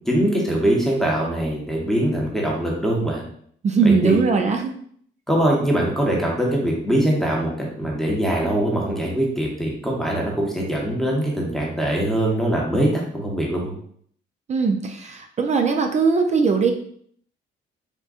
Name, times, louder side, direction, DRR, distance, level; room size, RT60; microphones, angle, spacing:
voice 1, 0.0-3.2 3.8-4.2 5.3-13.7, right 1 dB, ahead, -3 dB, 0.8 m, -22 dB
voice 2, 3.6-4.7 14.5-16.7, right 5 dB, 35° right, 4 dB, 0.4 m, -20 dB
3.5 x 2.5 x 2.4 m, 0.62 s
cardioid pair, 90°, 20 cm